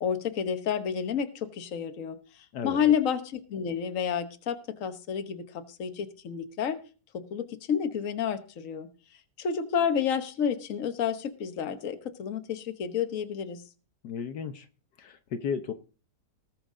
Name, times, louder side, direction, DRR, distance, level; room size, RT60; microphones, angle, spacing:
voice 1, 0.0-2.2 2.6-6.8 7.1-8.9 9.4-13.6, left 8 dB, 50° left, 9 dB, 1.4 m, -30 dB
voice 2, 2.5-2.9 14.0-14.7 15.0-15.7, left 6 dB, 75° left, 8 dB, 1.5 m, -34 dB
19.5 x 6.5 x 3.8 m, 0.36 s
omnidirectional pair, 1.8 m